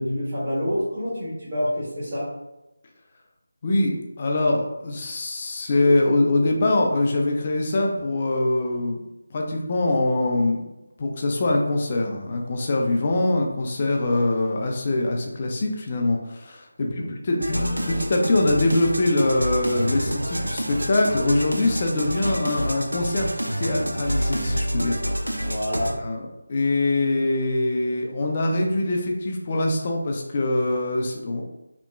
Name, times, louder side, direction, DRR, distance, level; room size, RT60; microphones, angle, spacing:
voice 1, 0.0-2.3 16.8-17.1 25.5-25.9, equal, 35° right, -13 dB, 1.0 m, -27 dB
voice 2, 3.6-9.0 9.3-10.6 11.0-17.6 17.9-23.3 23.6-25.5 26.0-31.4, left 2 dB, 30° left, 1 dB, 0.3 m, -23 dB
sound 1, 17.4-25.9, equal, 90° right, 0.4 m, -28 dB
Acoustic guitar / Strum, 17.5-20.7, left 2 dB, 70° left, 0.6 m, -37 dB
2.9 x 2.1 x 2.3 m, 0.96 s
figure-of-eight pair, 160°, 0 cm